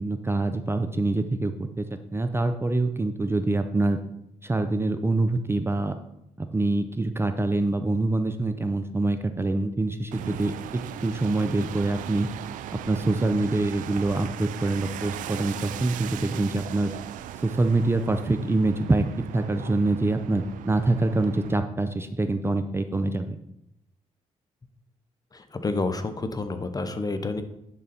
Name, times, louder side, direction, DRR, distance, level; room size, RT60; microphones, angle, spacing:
voice 1, 0.0-4.0 4.4-6.0 6.4-12.3 12.7-16.9 17.4-19.1 19.3-23.4, right 2 dB, 20° right, 8 dB, 0.5 m, -25 dB
sound 1, 10.1-21.6, right 11 dB, 90° right, 0.4 m, -39 dB
voice 2, 25.3-27.4, left 3 dB, 30° left, 9 dB, 0.8 m, -29 dB
10.5 x 3.9 x 4.2 m, 0.80 s
cardioid pair, 70°, 13 cm